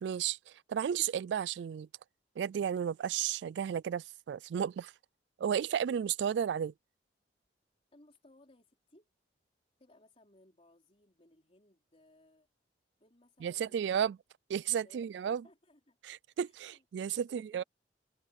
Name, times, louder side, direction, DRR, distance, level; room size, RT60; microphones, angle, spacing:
voice 1, 0.0-1.9 2.4-4.9 5.4-6.7 13.4-14.2 14.5-15.4 16.0-17.6, right 8 dB, 70° right, 0.3 m, -33 dB
voice 2, 7.9-9.1 9.8-12.5 13.0-13.9 14.8-16.0 16.4-17.6, left 1 dB, 35° left, 3.9 m, -64 dB
head